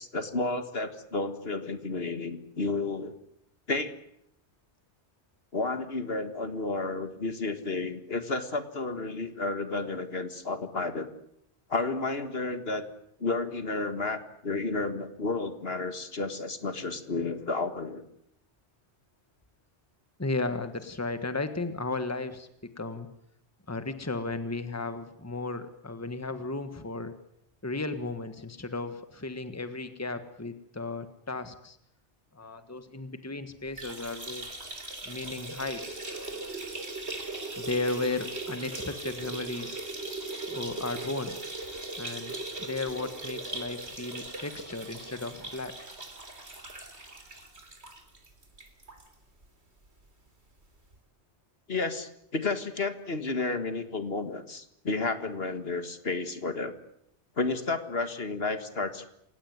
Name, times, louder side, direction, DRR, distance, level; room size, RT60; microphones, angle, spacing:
voice 1, 0.0-3.1 3.7-3.9 5.5-11.1 11.7-12.9 13.2-18.0 51.7-56.7 57.4-59.1, left 3 dB, 60° left, 9 dB, 2.0 m, -31 dB
voice 2, 20.2-23.1 23.7-27.1 27.6-31.8 32.3-34.5 35.0-36.5 37.6-39.8 40.5-41.4 42.0-45.7, left 3 dB, 15° left, 10 dB, 1.5 m, -35 dB
sound 1, 33.7-49.1 49.4-49.5 49.8-49.9 50.9-51.0, right 2 dB, 75° right, 3.8 m, -39 dB
28.0 x 17.0 x 9.6 m, 0.77 s
omnidirectional pair, 1.1 m